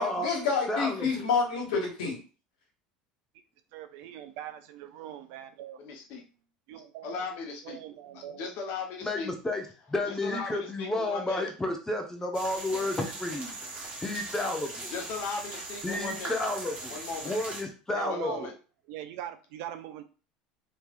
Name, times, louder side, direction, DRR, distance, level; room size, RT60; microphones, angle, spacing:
voice 1, 0.0-2.2, left 5 dB, 80° left, 0 dB, 1.3 m, -28 dB
voice 2, 0.7-1.3 9.0-9.6 9.9-13.5 14.0-14.9 15.8-16.9 17.3-18.3, left 1 dB, 15° left, 4 dB, 0.9 m, -31 dB
voice 3, 3.7-5.8 6.7-8.5 12.7-12.9 17.9-18.5 18.9-20.0, right 11 dB, 65° right, 9 dB, 0.5 m, -42 dB
voice 4, 5.8-6.2 7.0-7.8 8.1-9.3 10.0-11.5 14.9-16.4 16.9-17.4 18.1-18.5, left 5 dB, 60° left, 2 dB, 1.0 m, -37 dB
sound 1, 12.3-17.6, right 2 dB, 30° right, 1.2 m, -40 dB
3.3 x 3.1 x 2.5 m, 0.36 s
hypercardioid pair, 80°, 4 cm